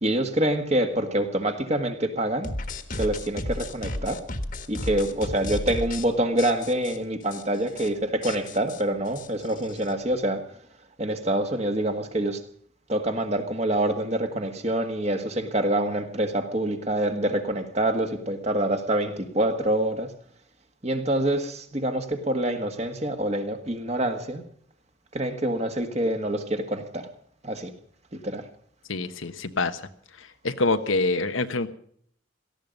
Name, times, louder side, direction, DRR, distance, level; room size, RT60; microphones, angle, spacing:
voice 1, 0.0-2.5 2.9-4.2 4.7-10.6 11.0-12.4 12.9-20.1 20.8-24.4 25.1-27.1 27.4-27.7 28.1-28.5, right 1 dB, 35° right, 1.7 m, -26 dB
sound 1, 2.4-6.1 6.4-7.0 7.3-7.4 7.7-7.9 8.2-9.9, left 1 dB, 45° left, 1.5 m, -33 dB
voice 2, 28.9-29.8 30.4-31.7, left 3 dB, 90° left, 1.2 m, -25 dB
18.0 x 14.0 x 5.3 m
head